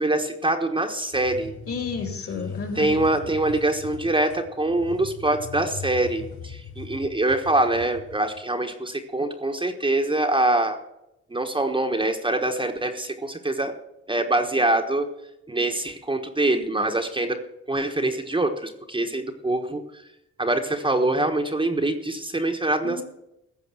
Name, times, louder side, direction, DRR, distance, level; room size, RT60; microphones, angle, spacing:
voice 1, 0.0-1.5 2.7-10.8 11.3-13.7 14.1-15.1 15.5-17.4 17.7-19.8 20.4-23.0, right 2 dB, 15° right, 4 dB, 1.3 m, -24 dB
sound 1, 1.1-8.4, left 6 dB, 70° left, 3.8 m, -40 dB
voice 2, 1.7-3.0 22.8-23.0, left 4 dB, 50° left, 5 dB, 3.2 m, -31 dB
15.0 x 5.3 x 8.9 m, 0.85 s
cardioid pair, 90°, 30 cm